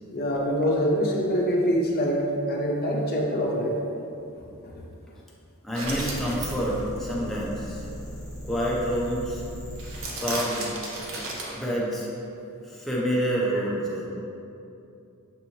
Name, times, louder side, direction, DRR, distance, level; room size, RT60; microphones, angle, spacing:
voice 1, 0.1-3.8 4.7-4.8, equal, 45° left, -2 dB, 0.6 m, -25 dB
voice 2, 5.6-7.8 8.4-9.4 10.1-10.8 11.5-12.1 12.6-14.1, equal, ahead, -6 dB, 0.5 m, -28 dB
sound 1, 5.7-6.9 9.8-11.5, right 2 dB, 60° right, 0.6 m, -34 dB
sound 2, 6.0-10.1, equal, 30° right, 1.3 m, -38 dB
5.3 x 3.0 x 2.8 m, 2.7 s
head